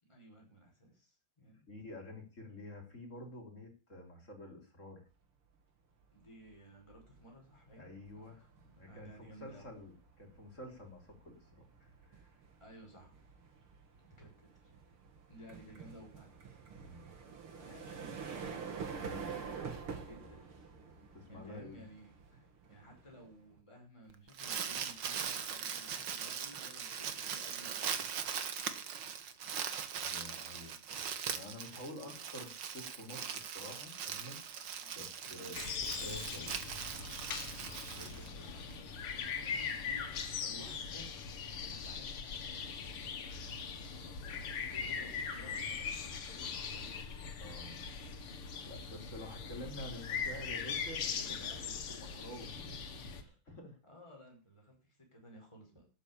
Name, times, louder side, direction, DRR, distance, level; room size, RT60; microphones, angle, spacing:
voice 1, 0.0-1.7 6.1-7.9 8.2-9.7 12.6-13.2 14.1-14.7 15.3-16.3 17.6-18.2 20.0-20.5 21.3-28.2 33.2-33.4 34.8-36.0 37.9-41.3 41.7-43.0 43.9-47.0 51.1-51.9 53.8-55.9, equal, 10° left, 0 dB, 5.3 m, -56 dB
voice 2, 1.7-5.0 7.8-8.5 8.7-12.4 16.7-17.0 18.9-19.3 21.1-21.8 29.9-34.6 34.9-36.9 37.9-38.7 47.4-47.7 48.6-51.2 51.9-53.8, left 1 dB, 35° left, 3 dB, 3.6 m, -49 dB
sound 1, 6.2-6.5 6.9-23.6, right 5 dB, 75° right, 3.2 m, -48 dB
Crumpling crinkling, 24.1-38.7, right 7 dB, 60° right, 1.9 m, -40 dB
sound 2, 35.5-53.2, left 6 dB, 85° left, 2.5 m, -41 dB
12.0 x 7.2 x 8.7 m, 0.35 s
omnidirectional pair, 2.4 m